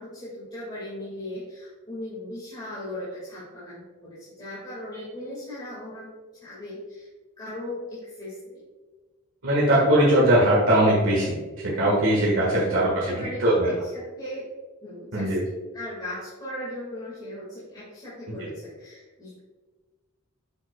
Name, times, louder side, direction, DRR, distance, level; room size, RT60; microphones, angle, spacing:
voice 1, 0.0-6.1 6.4-7.1 7.4-8.6 12.4-13.5 13.8-14.4 14.8-15.4 15.7-19.4, left 1 dB, 20° left, -9 dB, 2.0 m, -38 dB
voice 2, 9.4-13.7 15.1-15.4 18.4-18.5, right 1 dB, 75° right, -6 dB, 1.6 m, -21 dB
7.6 x 6.4 x 2.3 m, 1.3 s
head